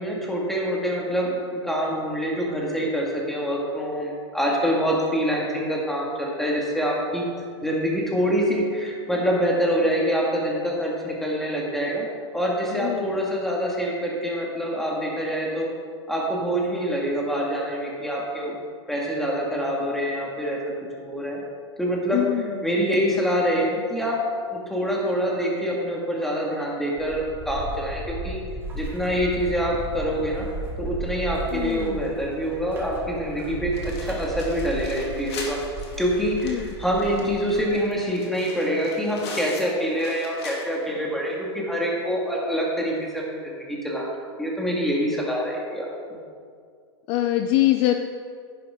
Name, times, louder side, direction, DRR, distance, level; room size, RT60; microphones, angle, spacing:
voice 1, 0.0-7.2 7.6-12.1 12.3-15.7 16.1-18.6 18.9-20.7 21.0-21.4 21.8-22.2 22.6-24.2 24.5-28.4 28.7-30.5 30.8-35.6 36.0-45.9, equal, ahead, -3 dB, 2.1 m, -25 dB
voice 2, 12.8-13.1 22.1-22.5 31.5-32.0 36.4-36.7 47.1-47.9, left 14 dB, 40° left, 7 dB, 0.5 m, -23 dB
sound 1, 27.0-37.8, right 2 dB, 15° right, 2.2 m, -35 dB
sound 2, 33.7-41.0 41.3-41.4 41.8-41.9 43.1-43.2, left 3 dB, 70° left, 2.4 m, -41 dB
10.5 x 10.5 x 3.7 m, 2.1 s
hypercardioid pair, 135°, 14 cm